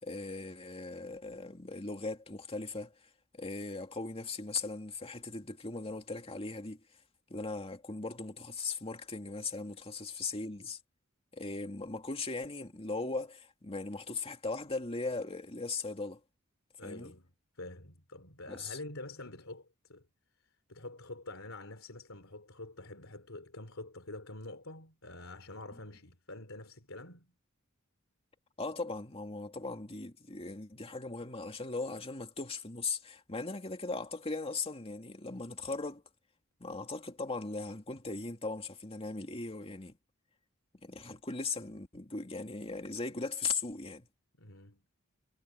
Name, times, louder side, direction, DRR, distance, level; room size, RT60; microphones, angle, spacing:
voice 1, 0.0-2.9 3.3-6.8 7.3-10.8 11.3-16.2 16.8-17.1 18.5-18.8 28.6-36.0 36.6-40.0 40.8-44.1, left 3 dB, 25° left, 2.4 m, -38 dB
voice 2, 16.8-17.3 17.6-20.0 20.7-27.3 44.3-44.8, left 2 dB, 70° left, 3.8 m, -46 dB
head